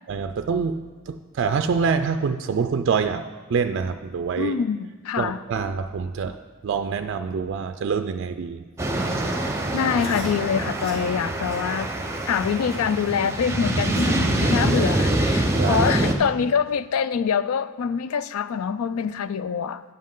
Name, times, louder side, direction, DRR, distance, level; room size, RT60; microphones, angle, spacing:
voice 1, 0.1-3.2 3.5-4.5 5.2-6.4 6.6-8.6 15.5-15.9, right 5 dB, 55° right, 0.3 m, -25 dB
voice 2, 4.4-5.4 9.7-11.9 12.3-19.8, left 7 dB, 80° left, 0.4 m, -25 dB
sound 1, 8.8-16.1, right 1 dB, 15° right, 0.8 m, -24 dB
Chewing mastication, 9.9-10.3 10.8-11.0 11.4-11.6 12.0-12.2 12.7-12.9 13.4-13.5 13.9-14.2 14.6-14.7 15.3-15.4 16.0-16.1 16.6-16.7, left 1 dB, 45° left, 2.3 m, -44 dB
11.0 x 7.4 x 3.8 m
head